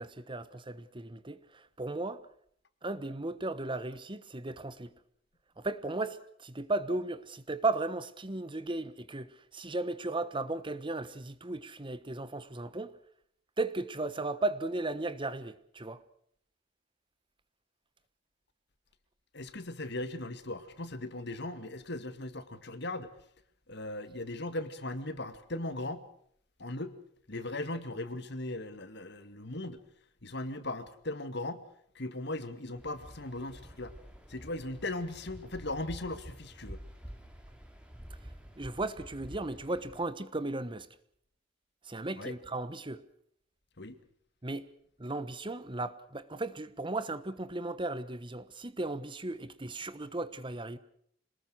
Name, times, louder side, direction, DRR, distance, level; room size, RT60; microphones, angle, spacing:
voice 1, 0.0-2.2 2.8-4.9 5.6-13.0 13.6-16.0 38.6-40.9 41.8-43.0 44.4-44.7 45.0-50.8, right 2 dB, 25° right, 1.3 m, -36 dB
voice 2, 19.3-23.1 23.7-26.0 26.6-26.9 27.3-29.8 30.2-31.6 32.0-33.9 34.3-36.8 42.2-42.3 43.8-44.0, left 2 dB, 65° left, 2.2 m, -38 dB
Waves surf, 32.7-40.0, equal, 5° right, 3.6 m, -49 dB
27.0 x 20.0 x 6.4 m
head